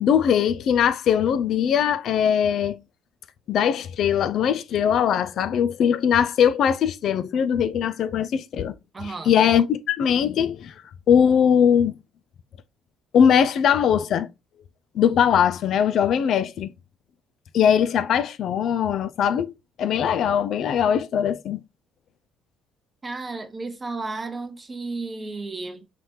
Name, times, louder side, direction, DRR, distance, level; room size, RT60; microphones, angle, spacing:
voice 1, 0.0-2.8 3.5-8.8 9.0-10.7 11.1-12.0 13.1-14.3 14.9-16.7 17.5-19.5 19.8-21.6, left 8 dB, 60° left, 0.3 m, -21 dB
voice 2, 8.9-9.3 23.0-25.8, right 3 dB, 30° right, 0.7 m, -33 dB
4.1 x 3.2 x 3.0 m
hypercardioid pair, 60°, 0 cm